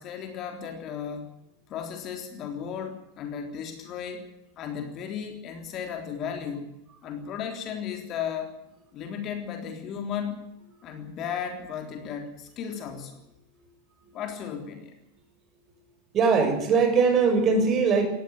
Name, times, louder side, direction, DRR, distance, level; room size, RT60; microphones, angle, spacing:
voice 1, 0.0-1.3 1.7-4.2 4.6-6.7 7.0-8.5 8.9-10.5 10.8-13.2 14.1-14.9, left 7 dB, 35° left, 5 dB, 3.6 m, -35 dB
voice 2, 16.1-18.1, right 5 dB, 30° right, 6 dB, 6.4 m, -21 dB
20.0 x 15.5 x 9.1 m, 0.88 s
figure-of-eight pair, 90°, 0 cm